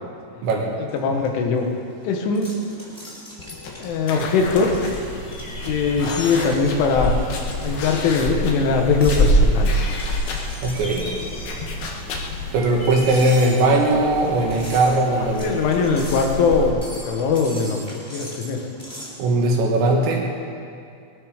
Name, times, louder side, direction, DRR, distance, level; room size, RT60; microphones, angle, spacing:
voice 1, 0.9-1.7 2.0-2.5 3.8-4.7 5.6-7.1 7.6-9.7 15.4-16.8 17.1-18.6, left 4 dB, 85° left, 3 dB, 3.8 m, -21 dB
sound 1, 0.9-19.2, left 1 dB, 5° left, 2.6 m, -40 dB
sound 2, 3.4-12.5, left 4 dB, 65° left, 2.8 m, -34 dB
sound 3, 4.4-16.7, equal, 30° left, 3.4 m, -27 dB
voice 2, 10.6-11.1 12.5-15.6 19.2-20.2, right 2 dB, 70° right, 0 dB, 3.9 m, -19 dB
20.0 x 13.0 x 5.1 m, 2.4 s
omnidirectional pair, 5.5 m